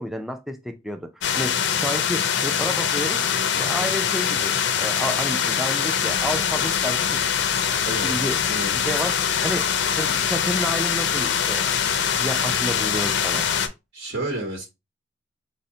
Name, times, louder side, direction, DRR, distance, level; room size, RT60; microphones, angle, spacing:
voice 1, 0.0-3.2 3.5-7.2 7.9-8.4 8.7-9.7 10.0-11.7 12.2-13.5, equal, ahead, 0.3 m, -30 dB
sound 1, 1.2-13.7, left 8 dB, 65° left, 0.4 m, -23 dB
voice 2, 7.8-8.7 13.9-14.7, right 2 dB, 60° right, 1.1 m, -31 dB
5.1 x 2.1 x 2.6 m
head